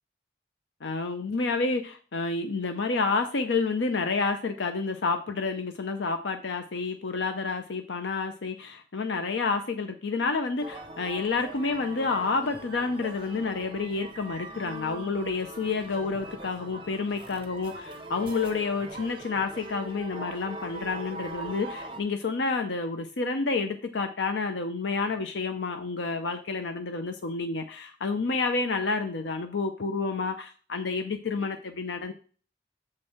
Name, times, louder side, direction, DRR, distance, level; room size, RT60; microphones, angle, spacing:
voice 1, 0.8-32.1, left 4 dB, 80° left, 7 dB, 0.6 m, -29 dB
sound 1, 10.6-22.0, right 2 dB, 30° right, 0.9 m, -41 dB
7.4 x 4.4 x 4.8 m, 0.40 s
head